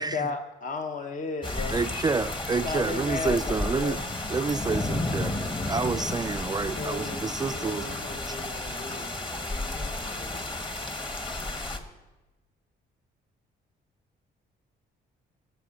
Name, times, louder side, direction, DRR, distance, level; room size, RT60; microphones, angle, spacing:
voice 1, 0.0-1.8 2.6-4.0, left 4 dB, 40° left, 0.7 m, -33 dB
sound 1, 1.4-11.8, left 2 dB, 25° left, 1.3 m, -32 dB
voice 2, 1.7-4.0 4.3-7.8, right 4 dB, 20° right, 0.4 m, -29 dB
voice 3, 5.8-6.2 6.5-11.2, left 2 dB, 75° left, 4.3 m, -43 dB
14.5 x 6.8 x 6.3 m
cardioid pair, 90°, 20 cm